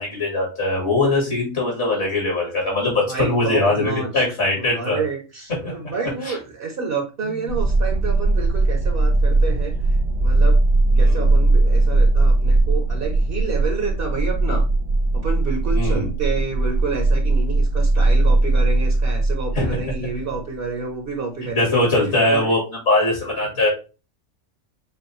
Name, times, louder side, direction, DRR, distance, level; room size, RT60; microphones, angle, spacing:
voice 1, 0.0-5.0 5.6-5.8 6.2-6.3 10.9-11.4 15.7-16.1 19.6-19.7 21.6-22.6 22.9-23.7, left 2 dB, 60° left, -3 dB, 2.3 m, -21 dB
voice 2, 3.1-4.2 4.5-10.6 11.0-14.6 15.1-22.6 23.2-23.3, right 4 dB, 55° right, 2 dB, 1.0 m, -29 dB
sound 1, 7.5-20.4, right 2 dB, 80° right, 1.1 m, -19 dB
6.9 x 2.4 x 3.0 m, 0.32 s
omnidirectional pair, 1.3 m